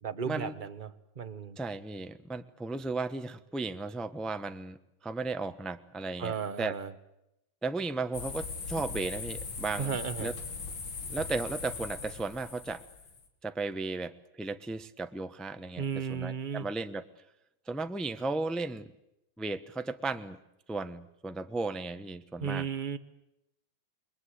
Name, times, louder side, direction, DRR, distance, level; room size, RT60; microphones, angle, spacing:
voice 1, 0.0-1.6 6.2-6.9 9.8-10.3 15.8-16.7 22.4-23.0, right 6 dB, 30° right, 11 dB, 1.1 m, -35 dB
voice 2, 1.6-4.8 5.0-6.7 7.6-9.9 10.2-10.3 11.1-12.8 13.4-15.8 16.1-17.0 17.7-18.9 19.4-20.4 20.7-22.7, right 3 dB, ahead, 9 dB, 0.5 m, -35 dB
sound 1, 8.1-13.3, left 4 dB, 75° left, 3.2 m, -39 dB
29.0 x 22.0 x 8.3 m, 0.86 s
omnidirectional pair, 2.2 m